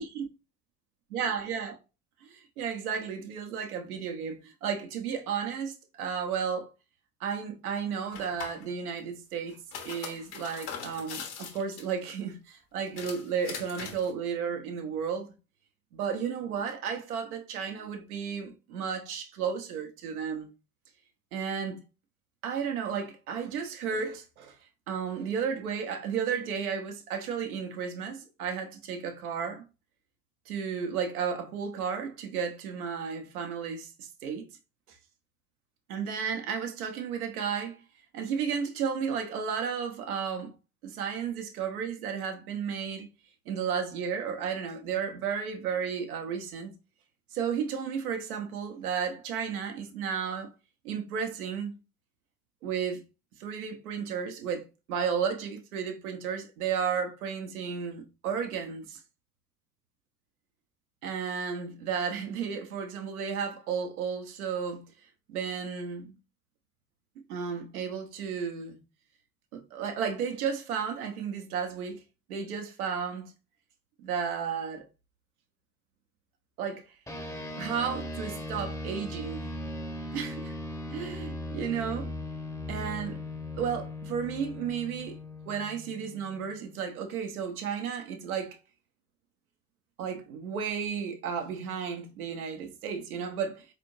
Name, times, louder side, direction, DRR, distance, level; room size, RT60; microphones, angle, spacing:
voice 1, 1.1-1.8 2.2-6.7 7.2-15.3 15.9-20.5 21.3-21.8 22.4-24.6 24.9-29.6 30.5-34.5 35.9-37.8 38.1-40.5 40.8-43.1 43.5-46.7 47.3-50.5 50.8-51.7 52.6-53.0 53.4-59.0 61.0-64.8 65.3-66.1 67.2-68.8 69.5-72.0 72.3-73.3 74.0-74.8 76.6-76.8 77.6-79.5 80.1-80.5 80.9-82.1 82.7-83.2 83.6-85.2 85.5-88.6 90.0-93.7, right 7 dB, 75° right, 1.0 m, -33 dB
sound 1, 8.1-8.7 9.5-12.1 12.9-14.1, left 6 dB, 60° left, 1.3 m, -41 dB
sound 2, 77.1-86.8, left 1 dB, 5° left, 0.8 m, -38 dB
4.2 x 3.4 x 3.1 m
figure-of-eight pair, 60°, 45 cm